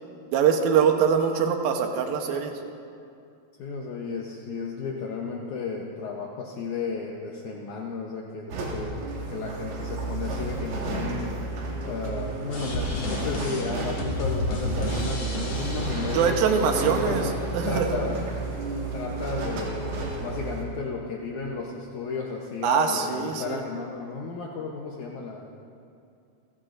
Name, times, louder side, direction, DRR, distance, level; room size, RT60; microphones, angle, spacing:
voice 1, 0.3-2.6 16.1-17.3 17.5-18.0 22.6-23.6, right 7 dB, 70° right, 4 dB, 2.5 m, -23 dB
voice 2, 3.6-11.3 11.9-17.2 17.7-18.3 18.9-25.5, left 4 dB, 80° left, -1 dB, 1.7 m, -33 dB
sound 1, 8.5-20.6, right 2 dB, 90° right, 4.1 m, -32 dB
sound 2, 12.5-17.5, left 2 dB, 45° left, 2.9 m, -32 dB
29.5 x 14.5 x 2.6 m, 2.5 s
omnidirectional pair, 4.9 m